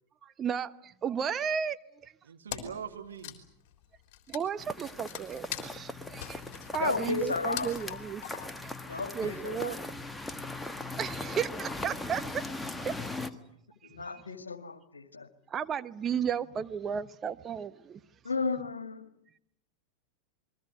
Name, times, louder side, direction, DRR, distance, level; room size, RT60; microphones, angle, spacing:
voice 1, 0.2-2.1 4.3-6.4 6.7-8.2 8.6-8.7 9.1-9.8 11.0-12.4 12.8-13.3 15.5-18.0, right 7 dB, 25° right, 1.0 m, -34 dB
voice 2, 2.3-3.4, right 7 dB, 70° right, 2.1 m, -42 dB
Wood, 2.5-2.9 3.1-8.7, left 11 dB, 45° left, 3.6 m, -42 dB
sound 1, 4.6-13.3, left 2 dB, 5° left, 1.5 m, -39 dB
voice 3, 6.8-7.7 8.9-9.8 13.8-15.3 18.2-19.1, left 4 dB, 75° left, 1.9 m, -33 dB
28.0 x 22.0 x 8.1 m
figure-of-eight pair, 90°, 0 cm